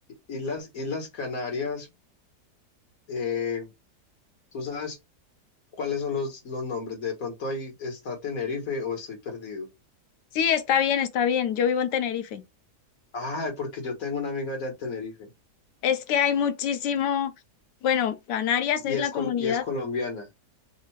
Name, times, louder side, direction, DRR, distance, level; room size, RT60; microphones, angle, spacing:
voice 1, 0.3-1.9 3.1-3.7 4.5-5.0 5.7-9.7 13.1-15.3 18.8-20.3, left 4 dB, 60° left, 1.7 m, -31 dB
voice 2, 10.3-12.4 15.8-17.3 17.8-19.6, left 8 dB, 90° left, 1.3 m, -25 dB
3.6 x 2.5 x 4.4 m
omnidirectional pair, 1.8 m